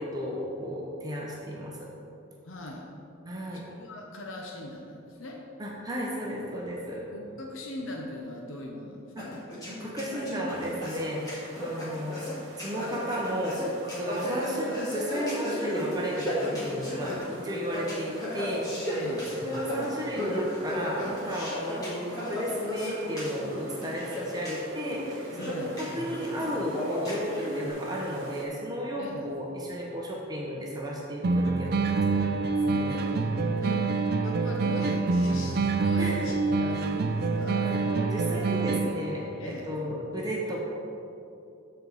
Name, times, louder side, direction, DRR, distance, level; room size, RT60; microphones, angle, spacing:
voice 1, 0.0-1.9 3.2-3.6 5.6-7.0 9.2-9.3 9.7-12.2 12.6-21.8 22.1-33.0 33.6-33.9 36.0-36.2 37.6-40.6, equal, 20° right, -3 dB, 0.9 m, -34 dB
voice 2, 2.4-2.9 3.5-5.4 6.9-9.3 18.9-19.3 25.4-25.8 29.0-29.3 32.7-37.6 39.4-39.7, left 1 dB, 80° left, 0 dB, 0.8 m, -40 dB
sound 1, 9.2-27.6, equal, 20° left, 1.9 m, -34 dB
sound 2, 10.5-28.4, right 2 dB, 70° right, 1.4 m, -49 dB
sound 3, 31.2-39.2, right 3 dB, 50° right, 0.4 m, -26 dB
13.0 x 4.5 x 4.0 m, 2.7 s
head